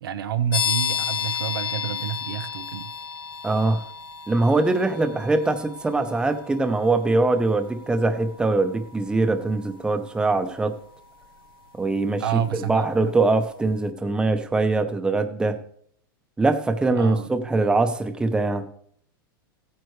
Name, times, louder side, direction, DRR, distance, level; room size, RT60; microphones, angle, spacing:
voice 1, 0.0-2.9 12.2-13.1 16.9-17.3, right 10 dB, 85° right, 10 dB, 0.8 m, -29 dB
sound 1, 0.5-13.0, left 8 dB, 85° left, 1.1 m, -34 dB
voice 2, 3.4-3.8 4.3-10.8 11.7-15.6 16.4-18.7, right 3 dB, 5° right, 8 dB, 0.8 m, -22 dB
15.5 x 9.3 x 3.2 m, 0.63 s
supercardioid pair, 140°, 12 cm